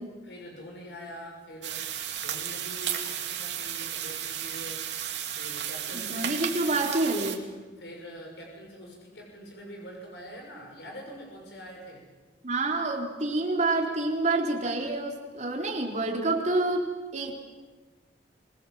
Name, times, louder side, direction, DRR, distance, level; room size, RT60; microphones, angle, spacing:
voice 1, 0.2-1.9 2.2-4.9 5.3-6.8 7.8-12.0, equal, 75° left, 0 dB, 6.6 m, -44 dB
sound 1, 1.6-7.4, right 10 dB, 75° right, 2.6 m, -34 dB
voice 2, 5.9-7.4 12.4-17.3, right 2 dB, 40° right, 1 dB, 3.9 m, -28 dB
26.0 x 21.0 x 7.7 m, 1.3 s
head